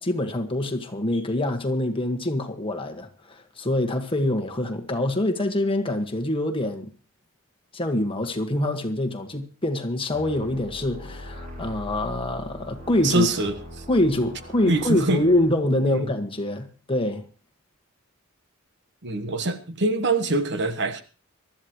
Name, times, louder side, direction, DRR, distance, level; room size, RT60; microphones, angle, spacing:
voice 1, 0.0-6.9 7.7-13.3 13.9-17.3, left 1 dB, 25° left, 1.6 m, -25 dB
sound 1, 10.1-15.5, equal, 40° right, 7.8 m, -41 dB
voice 2, 13.0-13.8 14.7-15.3 15.7-16.1 19.0-21.0, right 2 dB, 55° right, 1.3 m, -24 dB
23.0 x 13.0 x 3.1 m
head